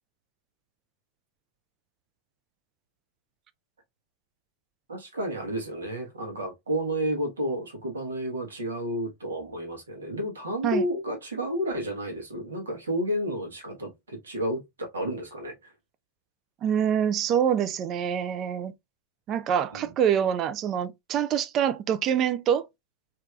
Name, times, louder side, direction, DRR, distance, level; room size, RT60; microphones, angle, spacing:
voice 1, 4.9-14.6 14.9-15.5 19.7-19.9, equal, 70° right, 1.3 m, -31 dB
voice 2, 16.6-18.7 19.3-22.7, right 9 dB, 35° right, 0.4 m, -25 dB
3.2 x 2.9 x 2.4 m
figure-of-eight pair, 90°, 0 cm